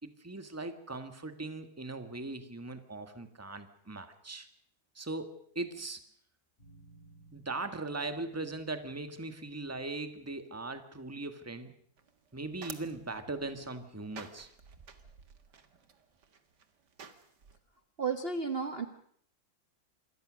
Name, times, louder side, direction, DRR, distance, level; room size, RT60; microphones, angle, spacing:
voice 1, 0.0-4.5 4.9-6.0 7.3-11.7 12.3-14.5, right 2 dB, 10° right, 8 dB, 1.6 m, -39 dB
sound 1, 6.6-11.7 12.8-13.7, right 2 dB, 30° left, 8.2 m, -60 dB
sound 2, 12.0-17.6, right 6 dB, 60° right, 2.3 m, -52 dB
voice 2, 18.0-18.9, right 5 dB, 35° right, 7 dB, 1.3 m, -32 dB
27.0 x 21.5 x 6.4 m, 0.66 s
omnidirectional pair, 2.1 m